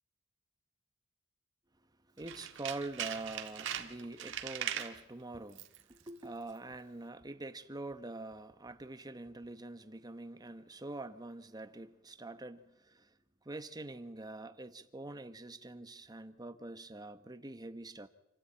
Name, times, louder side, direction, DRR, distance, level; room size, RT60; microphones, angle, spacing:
voice 1, 2.2-13.1 13.4-18.1, right 2 dB, 20° right, 1.1 m, -45 dB
Tools, 2.2-5.0 5.5-5.8 6.1-6.2, right 9 dB, 60° right, 1.8 m, -40 dB
27.5 x 14.5 x 8.7 m
head